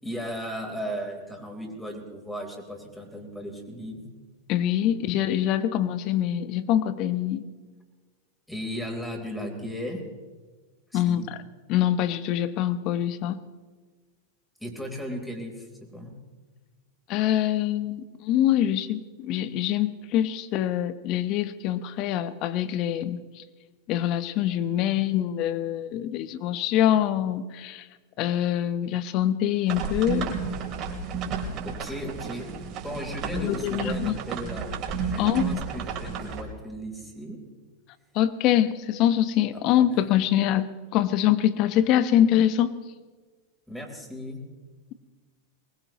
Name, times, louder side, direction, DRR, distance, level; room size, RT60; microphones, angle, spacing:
voice 1, 0.0-4.1 4.8-4.9 8.5-10.0 10.9-11.3 14.6-16.1 31.6-32.5 32.8-34.7 35.0-37.4 39.8-39.9 43.7-44.4, equal, 5° left, 1 dB, 4.1 m, -36 dB
voice 2, 4.5-7.4 10.9-11.2 11.7-13.4 17.1-23.2 23.9-27.9 28.2-30.4 33.4-34.1 35.2-35.5 38.1-42.8, left 11 dB, 50° left, 13 dB, 1.1 m, -24 dB
sound 1, 29.7-36.4, right 5 dB, 45° right, 3.7 m, -32 dB
23.5 x 20.0 x 3.1 m, 1.4 s
hypercardioid pair, 100°, 0 cm